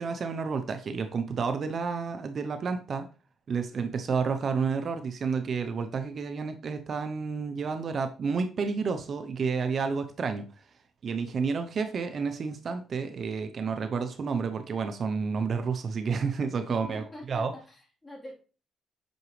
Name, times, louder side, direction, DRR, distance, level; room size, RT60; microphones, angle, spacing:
voice 1, 0.0-3.1 3.5-10.5 11.0-17.0 17.3-17.5, right 5 dB, 50° right, 8 dB, 0.7 m, -30 dB
voice 2, 16.7-18.3, left 1 dB, 20° left, -2 dB, 3.7 m, -46 dB
7.9 x 6.0 x 3.2 m, 0.35 s
cardioid pair, 90°, 0 cm